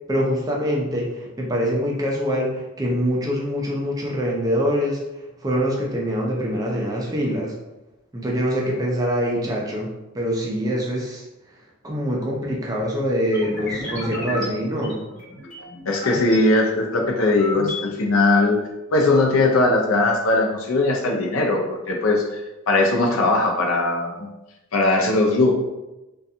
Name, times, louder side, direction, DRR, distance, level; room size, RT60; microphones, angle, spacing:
voice 1, 0.1-5.0 5.4-7.5 8.1-9.9 10.1-11.2 11.8-15.0, equal, 15° right, -2 dB, 0.4 m, -24 dB
sound 1, 13.3-16.4 16.9-17.8, left 1 dB, 35° left, 1.4 m, -33 dB
voice 2, 15.9-18.6 18.9-22.4 22.7-24.2 24.7-25.5, left 2 dB, 75° left, 1 dB, 0.5 m, -19 dB
2.4 x 2.3 x 2.7 m, 0.99 s
head